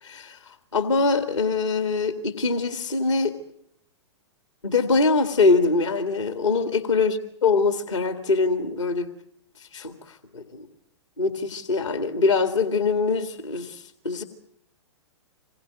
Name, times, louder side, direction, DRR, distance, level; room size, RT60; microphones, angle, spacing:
voice 1, 0.0-3.4 4.6-9.1 9.6-10.7 11.2-14.2, left 4 dB, 80° left, 7 dB, 2.1 m, -23 dB
26.0 x 21.5 x 9.2 m, 0.73 s
figure-of-eight pair, 110°, 15 cm